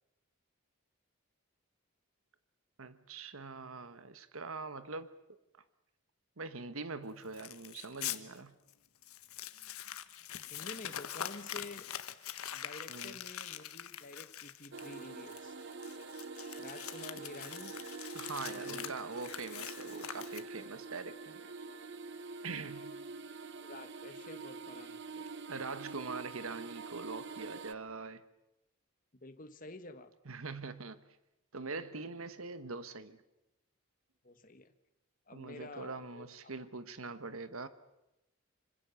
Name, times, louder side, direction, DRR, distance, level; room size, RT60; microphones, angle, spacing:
voice 1, 2.8-5.1 6.4-8.5 12.9-13.2 18.1-21.5 22.4-22.9 25.5-28.2 30.3-31.0 31.5-33.2 35.3-37.7, right 4 dB, 75° right, 1.3 m, -43 dB
Crumpling crinkling, 7.3-8.2 8.7-8.8 9.0-20.7, left 10 dB, 85° left, 1.4 m, -44 dB
voice 2, 10.5-11.9 12.5-15.6 16.6-17.8 18.5-18.9 23.6-25.3 29.2-30.1 34.2-34.7 35.3-36.7, left 2 dB, 40° left, 1.7 m, -50 dB
sound 1, 14.7-27.7, right 4 dB, 55° right, 1.0 m, -46 dB
26.5 x 25.5 x 7.1 m
head